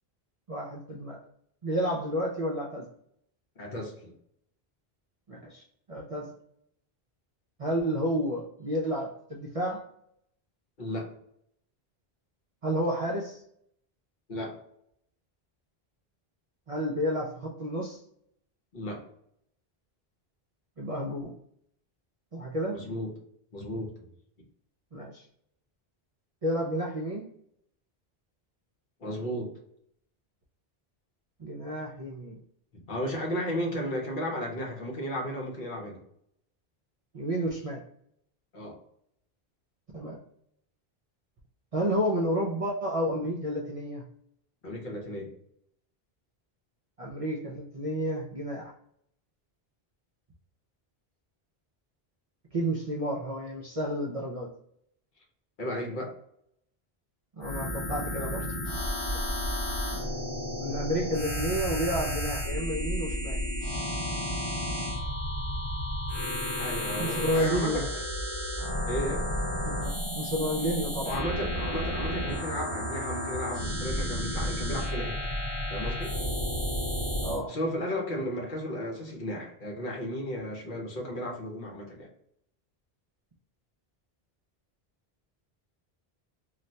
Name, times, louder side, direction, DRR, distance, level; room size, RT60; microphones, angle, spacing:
voice 1, 0.5-1.2 1.6-2.9 5.3-6.3 7.6-9.8 12.6-13.4 16.7-18.0 20.8-21.3 22.3-22.8 24.9-25.2 26.4-27.3 31.4-32.4 37.1-37.8 39.9-40.2 41.7-44.0 47.0-48.7 52.5-54.5 57.3-58.5 59.9-60.0 60.6-63.4 67.0-67.9 69.6-71.2 77.2-77.5, equal, 50° right, -3 dB, 0.5 m, -31 dB
voice 2, 3.6-4.1 10.8-11.1 14.3-14.6 18.7-19.1 22.7-23.1 23.5-23.9 29.0-29.5 32.7-36.0 38.5-38.8 44.6-45.3 55.6-56.2 66.6-67.9 68.9-69.3 71.0-75.2 75.7-76.1 77.5-82.1, equal, 55° left, 0 dB, 0.9 m, -34 dB
sound 1, 57.4-77.4, equal, 30° left, 1.0 m, -32 dB
2.4 x 2.1 x 3.9 m, 0.71 s
omnidirectional pair, 1.0 m